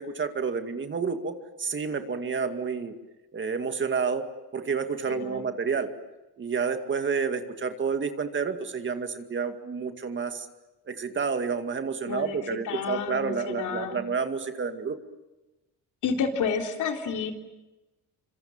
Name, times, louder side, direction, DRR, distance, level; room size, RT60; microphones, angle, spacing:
voice 1, 0.0-2.9 3.3-5.9 6.4-10.5 10.9-15.0, right 5 dB, 35° right, 7 dB, 2.2 m, -30 dB
voice 2, 5.0-5.5 12.1-12.4 12.6-14.0 16.0-17.3, left 6 dB, 65° left, 3 dB, 3.8 m, -30 dB
27.0 x 26.0 x 7.4 m, 1.0 s
cardioid pair, 120°, 33 cm